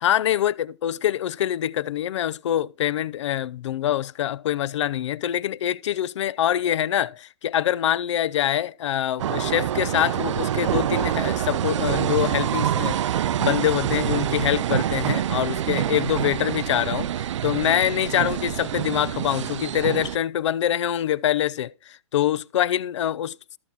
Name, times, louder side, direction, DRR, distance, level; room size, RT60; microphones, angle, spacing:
voice 1, 0.0-23.3, left 11 dB, 65° left, 0.5 m, -25 dB
sound 1, 9.2-20.2, right 11 dB, 70° right, 0.5 m, -26 dB
14.0 x 5.5 x 4.6 m
hypercardioid pair, 140°, 16 cm